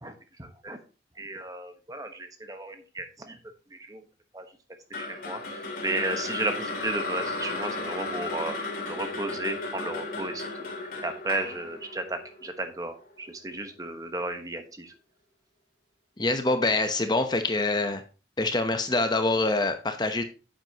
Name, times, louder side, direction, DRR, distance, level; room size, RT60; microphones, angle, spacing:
voice 1, 0.4-0.8 1.2-4.0 4.3-4.5 5.0-10.4 10.8-14.9, right 2 dB, 20° right, 7 dB, 1.1 m, -34 dB
sound 1, 4.9-13.1, left 3 dB, 50° left, 2.8 m, -34 dB
voice 2, 16.2-18.0 18.4-20.2, left 2 dB, 25° left, 7 dB, 0.8 m, -25 dB
10.0 x 7.9 x 2.9 m, 0.33 s
head